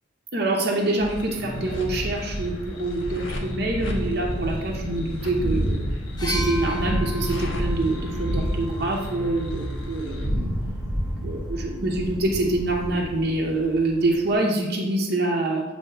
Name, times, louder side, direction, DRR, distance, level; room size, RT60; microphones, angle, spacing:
voice 1, 0.3-5.8 6.2-10.5 11.2-15.6, right 2 dB, 55° right, -1 dB, 0.8 m, -25 dB
sound 1, 0.8-10.3, left 1 dB, 90° left, 1.0 m, -37 dB
Thunder, 1.0-14.3, equal, 5° right, 1.1 m, -30 dB
sound 2, 6.2-10.0 11.0-11.2, left 1 dB, 20° left, 0.5 m, -36 dB
7.7 x 2.9 x 4.4 m, 1.1 s
head